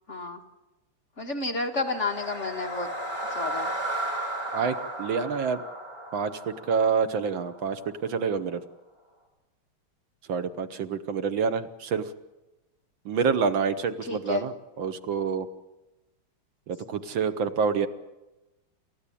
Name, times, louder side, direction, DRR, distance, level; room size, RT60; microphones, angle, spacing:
voice 1, 0.1-0.4 1.2-2.9 3.4-3.7 14.1-14.4, left 3 dB, 35° left, 3 dB, 1.8 m, -31 dB
sound 1, 1.7-7.8, right 1 dB, 10° right, 5.0 m, -34 dB
voice 2, 4.5-5.6 6.1-8.6 10.3-12.1 13.0-15.5 16.7-17.9, right 5 dB, 70° right, 10 dB, 1.7 m, -27 dB
28.5 x 14.5 x 8.5 m, 1.0 s
omnidirectional pair, 2.3 m